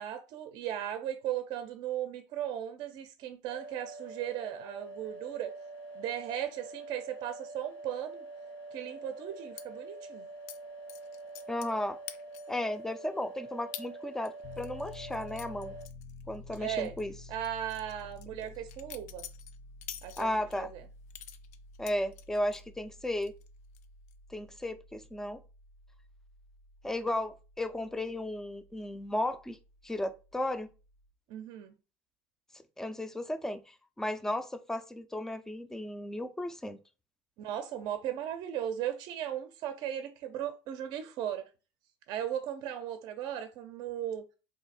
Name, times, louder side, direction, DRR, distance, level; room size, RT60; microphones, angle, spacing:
voice 1, 0.0-5.5 6.0-8.2 8.7-10.3 16.6-16.9 17.3-19.2 20.0-20.8 31.3-31.7 37.4-41.4 42.1-44.2, right 10 dB, 60° right, 0.5 m, -37 dB
sound 1, 3.5-15.9, right 2 dB, 70° left, 1.2 m, -46 dB
sound 2, 9.6-9.7 10.5-10.6 10.9-11.8 12.1-12.6 13.0-13.1 13.7-13.9 14.3-16.6 16.8-17.0 17.4-20.6 21.1-22.6 23.0-23.5 23.7-24.1, left 11 dB, 90° left, 0.4 m, -46 dB
voice 2, 11.5-12.0 12.5-15.7 16.3-17.1 20.2-20.7 21.8-23.3 24.3-25.4 26.8-29.6 29.8-30.7 32.8-36.8, left 1 dB, 5° left, 0.3 m, -34 dB
Piano, 14.4-31.1, left 3 dB, 50° left, 0.8 m, -52 dB
2.7 x 2.5 x 4.0 m
supercardioid pair, 120°, 8 cm